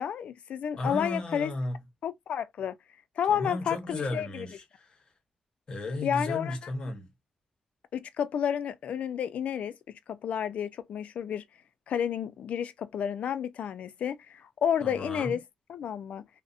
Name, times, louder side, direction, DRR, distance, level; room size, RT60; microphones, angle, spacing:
voice 1, 0.0-1.5 2.0-2.7 3.2-4.5 6.0-6.6 7.9-11.4 11.9-15.4 15.7-16.3, left 8 dB, 80° left, 0.3 m, -31 dB
voice 2, 0.8-1.8 3.3-5.0 5.7-7.1 14.8-15.4, left 2 dB, 45° left, 0.8 m, -34 dB
2.6 x 2.0 x 2.4 m
wide cardioid pair, 150°, 2 cm